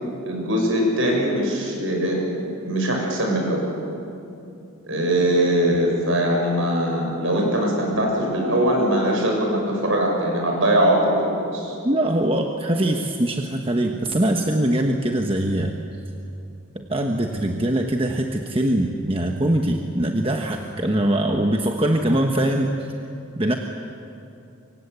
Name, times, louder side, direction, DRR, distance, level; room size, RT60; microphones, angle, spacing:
voice 1, 0.3-2.2 2.6-3.7 4.9-11.7, right 1 dB, 60° right, 0 dB, 6.7 m, -21 dB
voice 2, 11.8-15.7 16.7-22.9 23.3-23.5, right 1 dB, 25° right, 3 dB, 1.1 m, -22 dB
25.5 x 24.5 x 8.1 m, 2.7 s
head